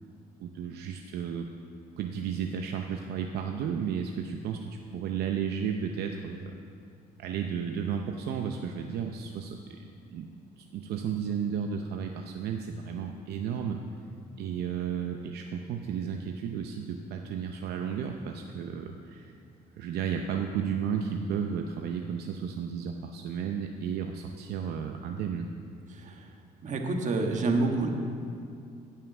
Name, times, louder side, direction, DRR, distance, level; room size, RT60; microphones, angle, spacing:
voice 1, 0.4-1.5 2.0-6.5 7.2-10.3 10.6-13.8 14.4-19.3 19.8-25.5, right 7 dB, 70° right, 4 dB, 0.7 m, -33 dB
voice 2, 25.9-26.2 26.6-27.9, right 3 dB, 45° right, 3 dB, 1.5 m, -28 dB
16.5 x 5.7 x 6.0 m, 2.4 s
cardioid pair, 110°, 17 cm